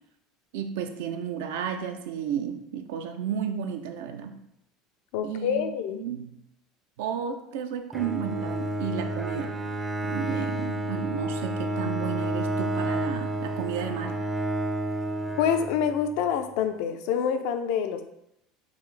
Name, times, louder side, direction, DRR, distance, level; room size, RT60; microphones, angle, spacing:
voice 1, 0.5-4.4 5.2-5.6 6.0-6.4 7.0-9.6 10.1-14.2, right 8 dB, 80° right, 7 dB, 0.4 m, -32 dB
voice 2, 5.1-6.0 15.4-18.0, left 8 dB, 70° left, 8 dB, 0.4 m, -26 dB
Bowed string instrument, 7.9-16.1, right 1 dB, 10° right, 0.4 m, -30 dB
3.8 x 2.5 x 3.2 m, 0.81 s
supercardioid pair, 105°, 0 cm